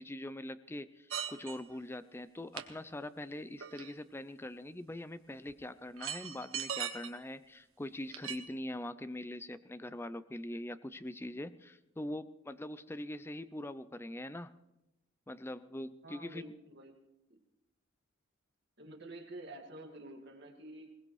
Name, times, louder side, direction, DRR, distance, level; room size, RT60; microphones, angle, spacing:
voice 1, 0.0-14.5 15.3-16.5, left 1 dB, 10° left, 14 dB, 0.4 m, -43 dB
sound 1, 1.1-1.8 2.6-2.7 3.6-4.1 5.5-5.6 6.0-7.1 8.1-8.4, right 8 dB, 85° right, 1.4 m, -39 dB
voice 2, 16.0-17.0 17.3-17.4 18.8-20.9, right 1 dB, 55° right, 2 dB, 2.0 m, -49 dB
21.0 x 19.5 x 3.2 m, 0.93 s
head